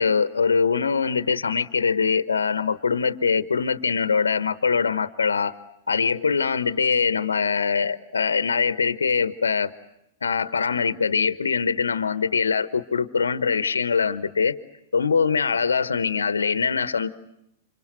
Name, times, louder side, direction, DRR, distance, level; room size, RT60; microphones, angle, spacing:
voice 1, 0.0-5.5 5.9-9.7 10.2-14.6 14.9-17.1, left 5 dB, 90° left, 14 dB, 1.2 m, -23 dB
29.0 x 26.0 x 7.9 m, 0.80 s
hypercardioid pair, 115°, 0 cm